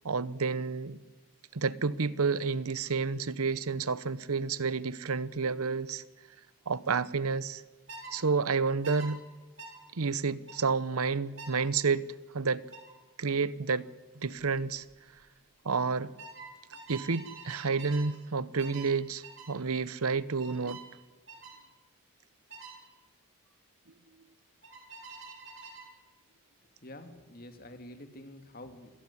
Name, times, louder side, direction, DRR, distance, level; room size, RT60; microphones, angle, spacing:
voice 1, 0.0-1.0 1.5-6.0 6.7-7.6 8.1-9.2 9.9-12.0 12.3-12.7 13.2-13.9 14.2-14.8 15.6-16.1 16.9-20.8, right 4 dB, 90° right, 0.9 m, -30 dB
sound 1, 7.9-8.1 8.8-9.1 9.6-9.8 10.5-10.7 11.4-11.6 12.7-12.9 14.4-14.6 14.9-15.3 16.2-18.1 18.6-18.9 19.2-19.5 20.4-20.9 21.3-21.6 22.5-22.8 24.6-25.9, right 4 dB, 55° right, 5.2 m, -46 dB
voice 2, 26.6-28.9, left 1 dB, 40° left, 2.5 m, -48 dB
28.0 x 14.5 x 9.7 m
head